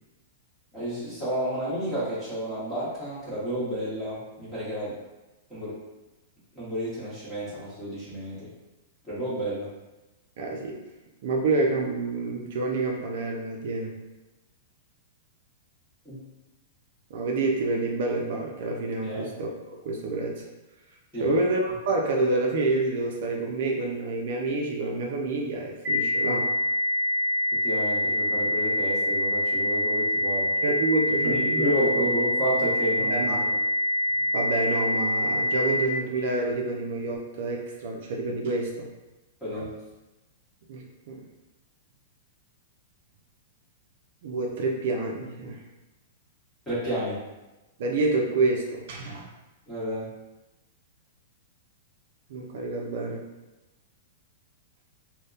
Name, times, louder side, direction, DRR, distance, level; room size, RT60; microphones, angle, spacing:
voice 1, 0.7-5.0 5.5-5.8 6.5-8.5 9.0-9.7 16.0-16.2 19.0-19.3 21.1-21.3 27.6-30.5 31.2-33.5 39.4-39.7 46.7-47.2 49.7-50.1, equal, 5° left, -10 dB, 1.1 m, -31 dB
voice 2, 10.4-10.8 11.2-13.9 17.1-20.4 21.2-26.5 30.6-32.0 33.1-33.4 34.3-38.9 40.7-41.2 44.2-45.6 47.8-49.3 52.3-53.2, right 2 dB, 65° right, 0 dB, 0.4 m, -28 dB
sound 1, 25.8-35.8, left 1 dB, 15° right, 0.7 m, -25 dB
2.7 x 2.1 x 2.4 m, 1.1 s
hypercardioid pair, 150°, 0 cm